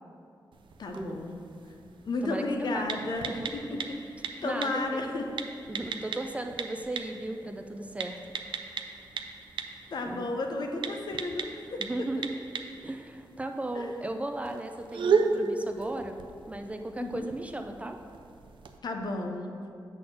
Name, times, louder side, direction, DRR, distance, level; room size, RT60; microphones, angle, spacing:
sound 1, 0.5-18.8, right 5 dB, 90° right, 0.5 m, -36 dB
voice 1, 0.8-1.4 2.0-4.1 4.4-5.4 9.9-12.1 13.7-13.9 17.0-17.3 18.8-19.5, left 2 dB, 60° left, 3 dB, 0.7 m, -33 dB
voice 2, 2.2-2.9 3.3-3.8 4.4-5.1 5.7-8.2 10.1-10.2 11.8-12.4 12.8-16.2 16.5-18.0, right 1 dB, 15° right, 5 dB, 0.3 m, -36 dB
7.6 x 4.1 x 6.1 m, 2.6 s
wide cardioid pair, 160°, 8 cm